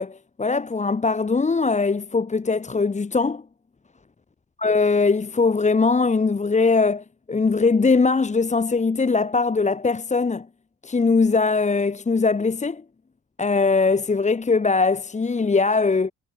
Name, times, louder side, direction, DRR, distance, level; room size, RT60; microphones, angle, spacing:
voice 1, 0.0-3.4 4.6-10.5 10.8-12.8 13.4-16.1, left 4 dB, 25° left, 1.4 m, -21 dB
cardioid pair, 90°, 30 cm